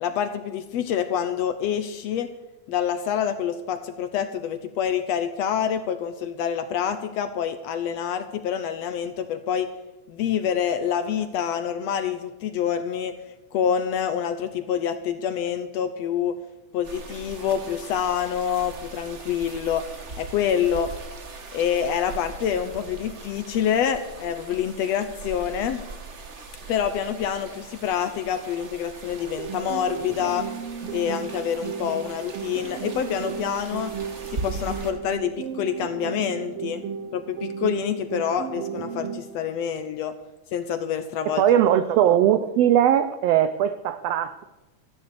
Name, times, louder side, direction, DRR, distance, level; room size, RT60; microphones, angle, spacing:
voice 1, 0.0-2.3 2.7-9.7 10.1-13.1 13.5-16.4 16.7-19.9 20.2-20.9 21.5-25.8 26.7-30.5 30.9-33.9 34.3-36.8 37.1-40.1 40.5-41.4, left 8 dB, 75° left, 9 dB, 1.6 m, -27 dB
sound 1, 16.8-34.9, right 3 dB, 55° right, 0.8 m, -40 dB
sound 2, 29.4-39.4, right 7 dB, 70° right, 1.5 m, -34 dB
voice 2, 41.4-44.4, right 10 dB, 85° right, 12 dB, 1.4 m, -20 dB
14.5 x 9.7 x 6.8 m, 1.1 s
omnidirectional pair, 3.5 m